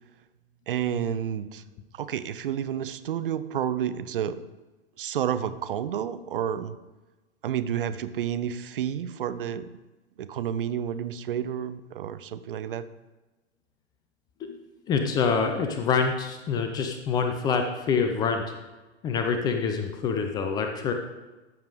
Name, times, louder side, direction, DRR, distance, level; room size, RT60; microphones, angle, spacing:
voice 1, 0.7-1.6 1.9-4.4 5.0-6.8 7.4-9.7 10.2-12.9, right 9 dB, 50° right, 13 dB, 0.6 m, -30 dB
voice 2, 14.9-18.4 19.0-20.9, left 5 dB, 10° left, 5 dB, 0.4 m, -26 dB
13.5 x 6.7 x 3.8 m, 1.1 s
figure-of-eight pair, 105°, 35 cm